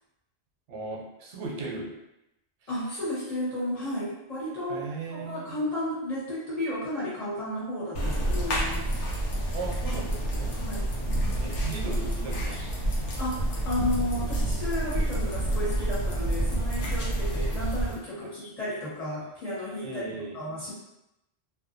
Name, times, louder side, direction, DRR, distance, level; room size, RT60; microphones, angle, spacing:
voice 1, 0.7-1.9 4.7-5.6 9.5-10.6 11.3-12.6 18.2-18.3 19.8-20.4, right 3 dB, 90° right, 0 dB, 0.9 m, -37 dB
voice 2, 2.7-4.8 5.1-9.0 10.6-10.9 13.2-20.0 20.3-20.7, left 1 dB, 35° left, -9 dB, 1.1 m, -33 dB
sound 1, 7.9-18.0, right 1 dB, 85° left, 1.0 m, -28 dB
2.5 x 2.2 x 2.4 m, 0.87 s
omnidirectional pair, 1.2 m